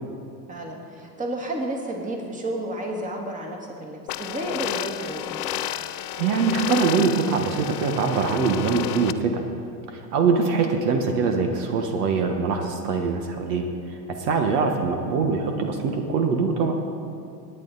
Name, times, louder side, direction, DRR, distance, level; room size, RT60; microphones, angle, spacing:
voice 1, 0.5-5.4, right 1 dB, 15° right, 1 dB, 2.0 m, -32 dB
sound 1, 4.1-9.1, left 13 dB, 65° left, 0.7 m, -31 dB
voice 2, 6.2-9.4 9.9-13.6 14.2-16.8, right 5 dB, 65° right, 4 dB, 1.4 m, -23 dB
18.5 x 9.1 x 4.1 m, 2.6 s
hypercardioid pair, 115°, 49 cm